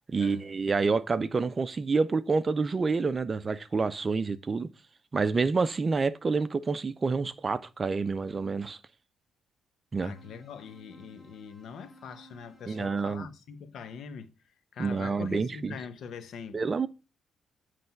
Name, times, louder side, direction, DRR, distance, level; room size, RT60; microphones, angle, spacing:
voice 1, 0.1-4.7 5.1-8.8 9.9-10.1 12.7-13.3 14.8-15.7 16.5-16.9, right 4 dB, 35° right, 0.5 m, -28 dB
voice 2, 10.0-14.3 14.7-16.6, left 6 dB, 70° left, 0.9 m, -43 dB
sound 1, 10.1-13.0, right 1 dB, 5° left, 1.9 m, -56 dB
9.3 x 3.3 x 5.8 m
cardioid pair, 90°, 0 cm